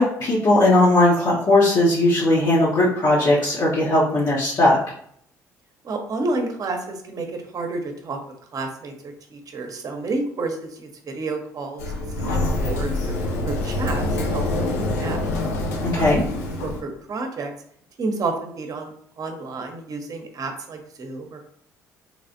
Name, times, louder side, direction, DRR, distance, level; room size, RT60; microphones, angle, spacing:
voice 1, 0.0-4.8 15.8-16.2, left 1 dB, 55° left, -6 dB, 0.9 m, -18 dB
voice 2, 5.8-8.2 8.5-11.8 12.2-13.1 13.4-14.4 14.7-15.2 15.9-16.1 16.6-17.5 18.0-18.9 19.2-21.4, right 3 dB, 45° right, 4 dB, 0.8 m, -30 dB
Sliding door, 11.8-16.8, left 2 dB, 85° left, 0.5 m, -25 dB
3.2 x 3.2 x 2.6 m, 0.65 s
hypercardioid pair, 55°, 8 cm